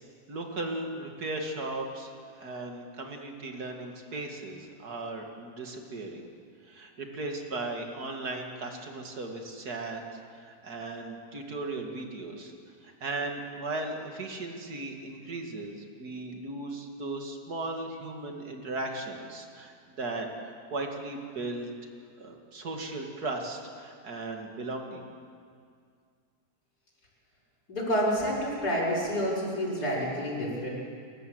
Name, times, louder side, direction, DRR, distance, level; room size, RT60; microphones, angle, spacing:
voice 1, 0.3-6.3 6.6-10.0 10.3-12.5 12.8-21.7 22.2-25.0, right 2 dB, 65° right, 2 dB, 2.7 m, -37 dB
voice 2, 27.7-30.7, equal, 65° left, -6 dB, 6.4 m, -28 dB
29.5 x 14.0 x 7.9 m, 2.2 s
omnidirectional pair, 1.8 m